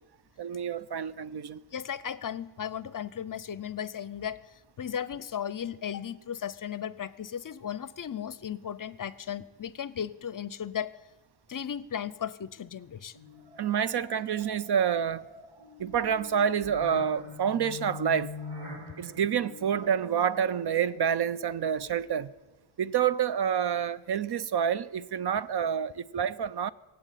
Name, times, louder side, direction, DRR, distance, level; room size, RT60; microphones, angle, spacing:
voice 1, 0.4-1.6 13.6-15.3 15.8-18.4 19.0-22.3 22.8-26.7, right 8 dB, 55° right, 0.6 m, -28 dB
voice 2, 1.7-10.9 11.5-13.2, left 8 dB, 40° left, 0.6 m, -36 dB
sound 1, 13.1-22.2, left 3 dB, 85° right, 4.4 m, -45 dB
20.0 x 7.9 x 9.1 m
wide cardioid pair, 110°, 49 cm